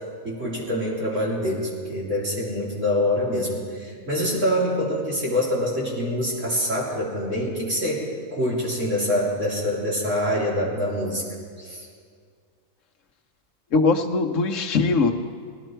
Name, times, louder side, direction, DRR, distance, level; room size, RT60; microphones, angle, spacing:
voice 1, 0.2-8.0 8.3-11.2 11.6-11.9, left 1 dB, 60° right, -5 dB, 3.6 m, -25 dB
voice 2, 13.7-15.1, left 4 dB, 65° left, 4 dB, 1.2 m, -21 dB
19.0 x 14.5 x 4.5 m, 2.1 s
omnidirectional pair, 1.5 m